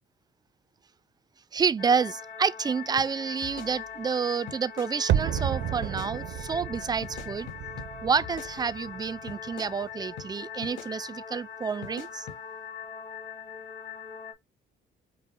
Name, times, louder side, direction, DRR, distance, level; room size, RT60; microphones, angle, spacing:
voice 1, 1.5-7.5 8.0-12.2, right 6 dB, 20° right, 0.3 m, -29 dB
sound 1, 1.8-14.3, left 7 dB, 60° left, 1.6 m, -42 dB
sound 2, 3.0-3.1 3.4-4.2 4.5-4.9 5.4-5.5 5.8-6.1 7.0-7.9 8.2-9.0 9.3-9.7 10.2-10.3 10.6-10.9 11.8-12.4, left 7 dB, 75° left, 1.4 m, -44 dB
sound 3, 5.1-10.0 10.3-10.4, right 10 dB, 75° right, 0.6 m, -32 dB
5.3 x 2.0 x 3.9 m
cardioid pair, 90°, 20 cm